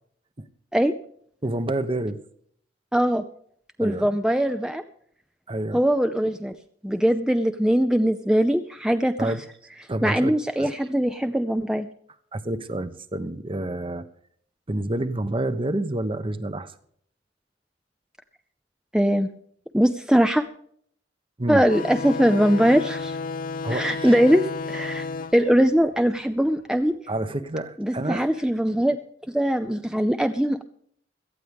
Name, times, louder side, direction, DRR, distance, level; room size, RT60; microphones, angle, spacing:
voice 1, 1.4-2.2 3.8-4.1 5.5-5.8 9.2-9.4 9.9-10.7 12.3-14.1 14.7-16.7 21.4-21.6 23.6-24.2 27.1-28.3, right 1 dB, 30° right, 12 dB, 1.0 m, -28 dB
voice 2, 2.9-3.2 3.8-4.8 5.7-6.5 6.8-9.3 10.0-11.9 18.9-19.3 19.7-20.4 21.5-23.2 23.7-25.0 25.3-26.9 27.8-29.0 29.3-30.6, equal, 5° right, 8 dB, 0.5 m, -21 dB
sound 1, 21.7-26.8, left 4 dB, 50° left, 0.6 m, -33 dB
18.0 x 13.0 x 3.5 m, 0.64 s
head